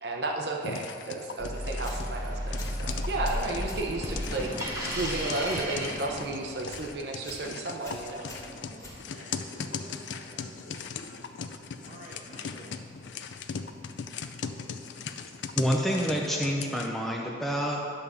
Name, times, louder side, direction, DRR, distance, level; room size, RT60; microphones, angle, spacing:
voice 1, 0.0-8.2, right 2 dB, 70° right, 1 dB, 0.7 m, -33 dB
sound 1, 0.6-16.9, left 6 dB, 90° left, 0.5 m, -39 dB
sound 2, 1.4-6.7, equal, 15° right, 1.1 m, -34 dB
sound 3, 1.8-2.2 2.6-3.9 4.2-5.7 6.0-6.3 6.6-6.9 7.2-7.5 7.8-9.4, left 1 dB, 20° left, 1.9 m, -46 dB
voice 2, 8.2-11.2 11.8-12.8, right 1 dB, 45° right, -3 dB, 1.4 m, -50 dB
voice 3, 15.6-17.8, equal, ahead, -1 dB, 0.5 m, -28 dB
10.0 x 3.6 x 6.8 m, 2.4 s
head